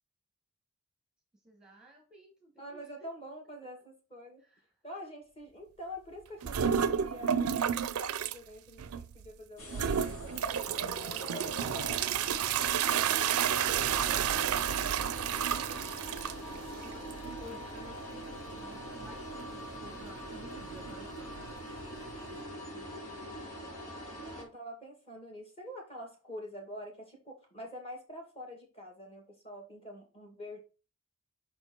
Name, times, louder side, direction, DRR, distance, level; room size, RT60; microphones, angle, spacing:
voice 1, 1.4-3.1 4.4-4.7 16.8-17.1 17.4-22.9, equal, 5° right, 2 dB, 1.1 m, -54 dB
voice 2, 2.6-4.4 4.8-10.5 10.8-15.1 24.4-30.6, equal, 25° left, 1 dB, 2.1 m, -47 dB
sound 1, 6.4-8.4 8.8-9.3 9.7-22.4, right 8 dB, 70° right, 0.5 m, -32 dB
sound 2, 9.6-24.4, equal, 75° left, 1.9 m, -43 dB
5.5 x 4.4 x 4.3 m, 0.32 s
head